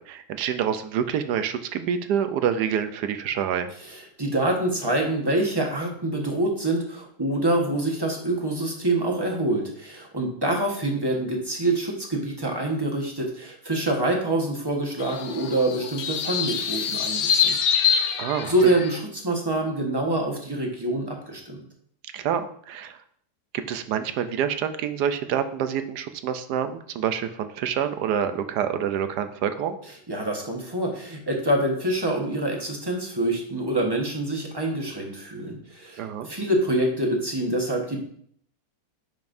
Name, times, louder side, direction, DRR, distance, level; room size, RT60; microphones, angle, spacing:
voice 1, 0.0-3.7 18.2-18.5 22.1-23.0 23.5-29.8 36.0-36.3, right 8 dB, 75° right, 9 dB, 1.2 m, -27 dB
voice 2, 3.8-18.2 18.4-21.6 30.1-38.0, right 1 dB, 15° right, 0 dB, 1.1 m, -26 dB
sound 1, 15.0-19.0, left 7 dB, 65° left, 1.1 m, -25 dB
10.5 x 5.3 x 2.6 m, 0.63 s
omnidirectional pair, 1.8 m